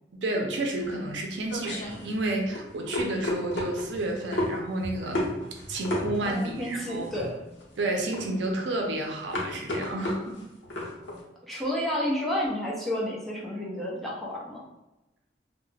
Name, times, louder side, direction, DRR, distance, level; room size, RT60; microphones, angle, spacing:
voice 1, 0.2-7.1 7.8-10.4, right 2 dB, 80° right, 2 dB, 0.5 m, -31 dB
sound 1, 0.8-11.2, left 1 dB, 85° left, 0.7 m, -33 dB
voice 2, 6.2-7.4 11.4-14.7, left 1 dB, ahead, -5 dB, 0.5 m, -31 dB
2.3 x 2.0 x 3.2 m, 0.97 s
head